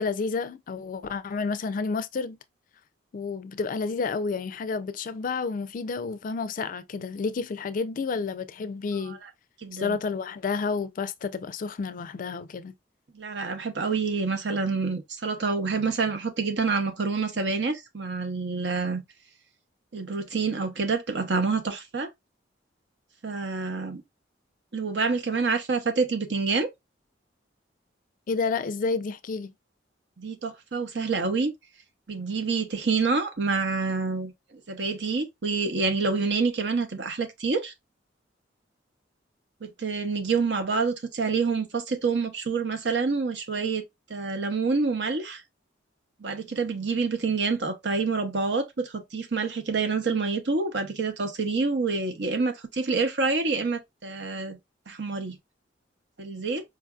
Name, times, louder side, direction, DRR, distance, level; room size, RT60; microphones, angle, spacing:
voice 1, 0.0-2.4 3.1-9.2 9.7-12.7 28.3-29.5, left 4 dB, 45° left, 0.4 m, -30 dB
voice 2, 9.0-9.3 9.6-10.0 13.1-19.0 19.9-22.1 23.2-24.0 24.7-26.7 30.2-31.5 32.1-37.7 39.6-43.8 44.1-45.4 46.2-54.6 54.9-55.4 56.2-56.6, right 4 dB, 65° right, 0.8 m, -27 dB
4.7 x 2.5 x 2.3 m
head